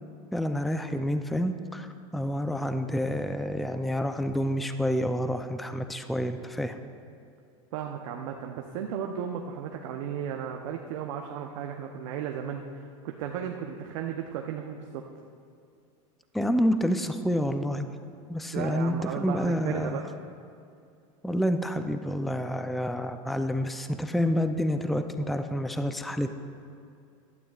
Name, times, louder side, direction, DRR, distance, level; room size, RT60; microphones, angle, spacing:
voice 1, 0.3-6.8 16.3-17.9 18.3-20.0 21.2-26.3, equal, ahead, 8 dB, 0.4 m, -28 dB
voice 2, 7.7-15.0 18.5-20.1, right 8 dB, 70° right, 2 dB, 0.8 m, -35 dB
16.0 x 12.0 x 2.4 m, 2.4 s
supercardioid pair, 115°, 17 cm